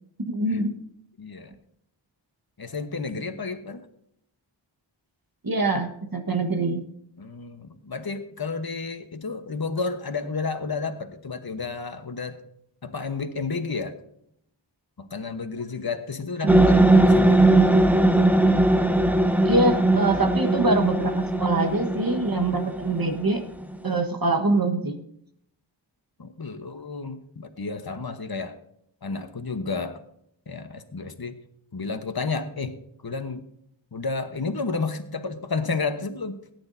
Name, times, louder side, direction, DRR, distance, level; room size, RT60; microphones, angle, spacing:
voice 1, 0.3-0.7 5.4-6.8 16.4-16.8 19.4-23.4 23.8-25.0, right 2 dB, 50° right, 5 dB, 1.5 m, -24 dB
voice 2, 1.2-1.5 2.6-3.8 7.2-12.4 12.8-13.9 15.0-17.5 26.2-28.6 29.0-30.0 30.5-31.4 31.7-32.7 33.0-33.4 33.9-36.4, left 4 dB, 50° left, 7 dB, 1.2 m, -31 dB
sound 1, 16.5-23.8, right 2 dB, 5° right, 0.8 m, -20 dB
18.0 x 9.6 x 2.7 m, 0.73 s
wide cardioid pair, 50°, 46 cm